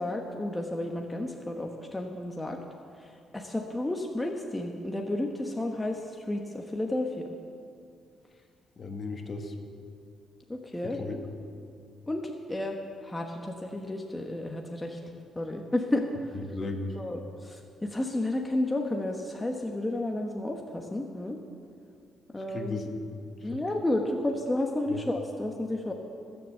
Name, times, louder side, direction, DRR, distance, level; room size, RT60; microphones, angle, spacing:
voice 1, 0.0-2.6 3.3-6.0 6.3-7.1 10.5-11.0 12.1-12.2 12.5-12.8 13.0-15.0 15.4-16.0 17.0-21.4 22.3-22.8 23.4-25.9, left 1 dB, 15° left, 1 dB, 1.1 m, -31 dB
voice 2, 8.8-9.5 10.8-11.2 16.3-17.0 22.5-23.0 23.4-23.6 24.9-25.0, left 3 dB, 40° left, 4 dB, 1.7 m, -36 dB
20.5 x 7.2 x 7.7 m, 2.4 s
cardioid pair, 90°, 0 cm